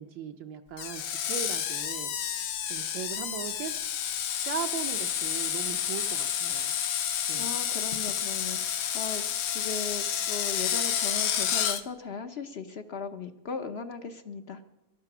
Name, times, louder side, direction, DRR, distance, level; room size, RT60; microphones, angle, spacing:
voice 1, 0.0-2.4 2.7-3.7 4.4-6.7 7.3-7.5, right 8 dB, 75° right, 3 dB, 1.4 m, -38 dB
Screech, 0.8-11.8, left 9 dB, 80° left, 1.7 m, -30 dB
voice 2, 7.3-14.6, left 5 dB, 60° left, 8 dB, 0.6 m, -38 dB
20.0 x 12.0 x 6.0 m, 1.0 s
omnidirectional pair, 2.1 m